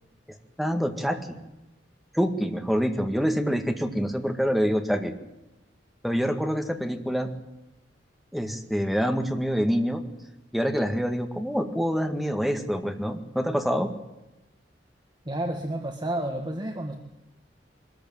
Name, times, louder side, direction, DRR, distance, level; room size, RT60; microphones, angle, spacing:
voice 1, 0.6-1.4 2.1-5.1 6.0-7.3 8.3-10.0 10.5-13.9, equal, ahead, 5 dB, 2.0 m, -26 dB
voice 2, 15.3-17.0, right 1 dB, 25° right, 3 dB, 1.7 m, -30 dB
23.0 x 14.5 x 9.2 m, 0.98 s
head